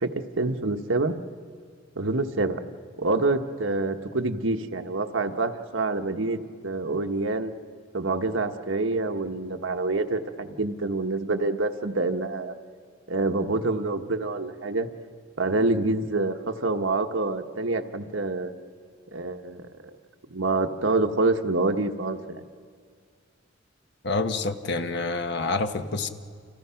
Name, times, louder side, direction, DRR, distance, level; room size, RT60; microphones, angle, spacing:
voice 1, 0.0-1.1 2.0-2.6 3.0-7.5 7.9-12.5 13.1-14.9 15.4-18.5 19.1-19.7 20.3-22.4, right 2 dB, 80° right, 7 dB, 1.3 m, -26 dB
voice 2, 24.0-26.1, left 3 dB, 60° left, 8 dB, 1.2 m, -27 dB
29.0 x 28.0 x 5.8 m, 2.1 s
head